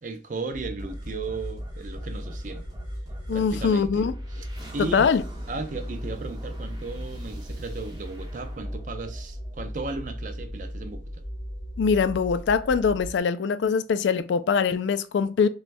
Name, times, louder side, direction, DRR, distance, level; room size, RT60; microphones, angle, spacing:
voice 1, 0.0-2.6 3.3-4.5 4.7-5.1 5.5-11.2, right 3 dB, 45° right, 0.5 m, -35 dB
sound 1, 0.5-13.2, equal, 45° left, 0.8 m, -37 dB
sound 2, 0.8-10.1, equal, 25° right, 1.0 m, -45 dB
voice 2, 3.3-4.1 4.9-5.2 11.8-15.5, left 5 dB, 85° left, 0.4 m, -23 dB
6.1 x 2.3 x 2.6 m
head